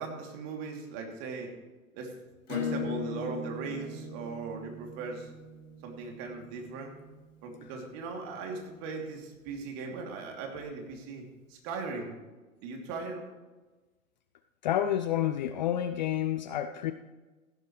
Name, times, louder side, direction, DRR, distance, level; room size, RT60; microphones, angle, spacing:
voice 1, 0.0-1.5 1.9-2.1 2.5-5.3 5.8-7.0 7.4-11.2 11.5-12.1 12.6-13.2, right 4 dB, 35° right, 1 dB, 2.9 m, -38 dB
Acoustic guitar / Strum, 2.5-7.7, left 4 dB, 55° left, 2.5 m, -39 dB
voice 2, 14.6-16.9, left 11 dB, 35° left, 10 dB, 0.4 m, -29 dB
15.5 x 12.0 x 3.2 m, 1.2 s
hypercardioid pair, 115°, 42 cm